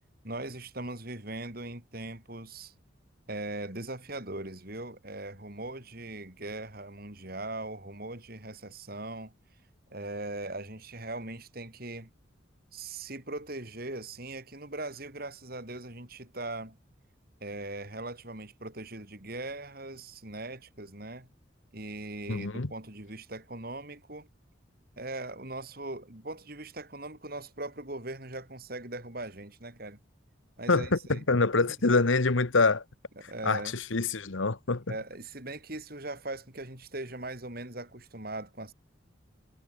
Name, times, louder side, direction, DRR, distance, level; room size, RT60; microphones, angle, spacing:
voice 1, 0.2-2.7 3.3-9.3 9.9-12.1 12.7-16.8 17.4-21.3 21.7-24.3 25.0-30.0 30.6-31.2 33.2-33.8 34.9-38.7, right 2 dB, 50° right, 4.3 m, -40 dB
voice 2, 22.3-22.7 30.7-32.8 33.4-34.8, left 3 dB, 80° left, 1.3 m, -25 dB
head